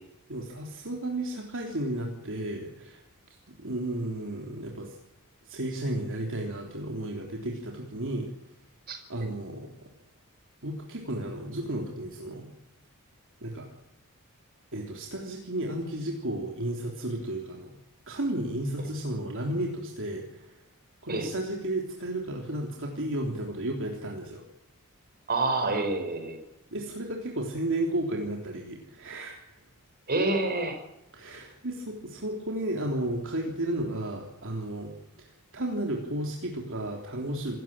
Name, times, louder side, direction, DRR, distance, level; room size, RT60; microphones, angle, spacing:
voice 1, 0.3-3.0 3.5-5.0 5.5-8.3 9.1-9.7 10.6-12.5 13.4-13.7 14.7-17.8 18.1-20.5 21.0-24.4 26.7-29.6 31.1-37.6, right 1 dB, 60° right, 1 dB, 3.5 m, -33 dB
voice 2, 25.3-26.4 30.1-30.8, right 2 dB, 45° right, 6 dB, 5.6 m, -27 dB
27.0 x 15.0 x 8.9 m, 0.91 s
head